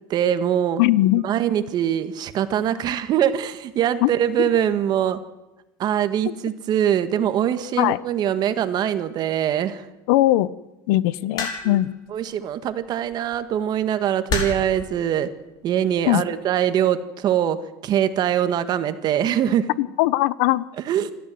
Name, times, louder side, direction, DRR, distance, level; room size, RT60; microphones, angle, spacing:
voice 1, 0.1-0.8 1.2-5.2 5.8-9.9 11.6-11.8 12.1-15.3 15.6-19.7 20.8-21.1, right 10 dB, 40° right, 11 dB, 1.7 m, -23 dB
voice 2, 0.8-1.2 4.0-4.1 4.4-4.5 7.8-8.0 10.1-10.5 10.9-11.9 16.1-16.2 19.8-20.6, left 16 dB, 75° left, 19 dB, 1.0 m, -19 dB
sound 1, 11.4-11.9 13.1-13.4 14.3-14.8 15.7-16.1, left 4 dB, 40° left, 6.1 m, -27 dB
26.0 x 14.5 x 7.9 m, 1.0 s
supercardioid pair, 130°, 11 cm